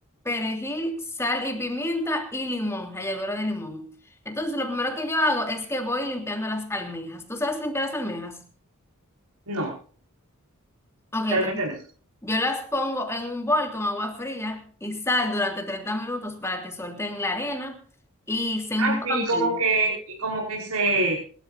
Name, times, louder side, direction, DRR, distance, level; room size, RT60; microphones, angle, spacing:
voice 1, 0.2-3.9 4.2-8.4 11.1-11.6 12.2-17.8 18.3-19.6, left 1 dB, 10° left, 3 dB, 3.1 m, -28 dB
voice 2, 11.3-11.7 18.8-21.2, right 2 dB, 85° right, -3 dB, 5.5 m, -25 dB
27.0 x 13.0 x 2.7 m, 0.43 s
head